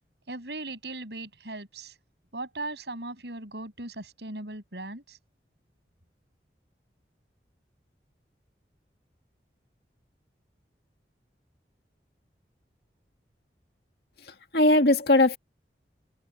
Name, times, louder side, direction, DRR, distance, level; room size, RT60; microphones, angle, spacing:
voice 1, 0.3-1.9 2.3-5.2, right 2 dB, 75° right, 7.9 m, -38 dB
voice 2, 14.2-15.4, left 2 dB, 65° left, 2.2 m, -20 dB
head